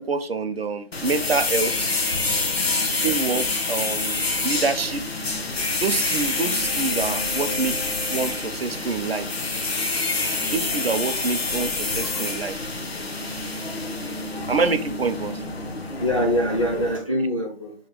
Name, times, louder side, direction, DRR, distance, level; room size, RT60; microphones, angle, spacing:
voice 1, 0.0-1.9 3.0-5.0 5.8-7.8 8.1-9.3 10.5-12.6 14.5-15.4, right 4 dB, 65° right, 9 dB, 0.5 m, -26 dB
sound 1, 0.9-17.0, left 3 dB, 70° left, 0.8 m, -27 dB
voice 2, 2.5-2.8 16.0-17.7, equal, 30° left, 0 dB, 0.5 m, -24 dB
3.0 x 2.2 x 3.7 m, 0.38 s
figure-of-eight pair, 160°, 32 cm